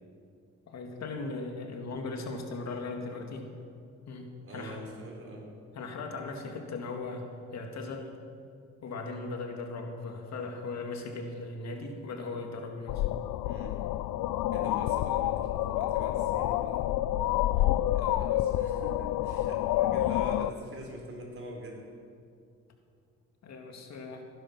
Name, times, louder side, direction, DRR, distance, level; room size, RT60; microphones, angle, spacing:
voice 1, 0.7-3.5 4.1-4.8 5.7-8.1 8.8-13.0 17.6-17.8 23.4-24.2, left 3 dB, 60° left, 3 dB, 2.1 m, -38 dB
voice 2, 4.4-5.5 13.4-13.8 14.5-16.9 17.9-21.8, right 1 dB, 45° right, -1 dB, 4.4 m, -44 dB
sound 1, 12.9-20.5, left 14 dB, 90° left, 0.5 m, -28 dB
18.0 x 10.0 x 6.1 m, 2.3 s
cardioid pair, 90°, 30 cm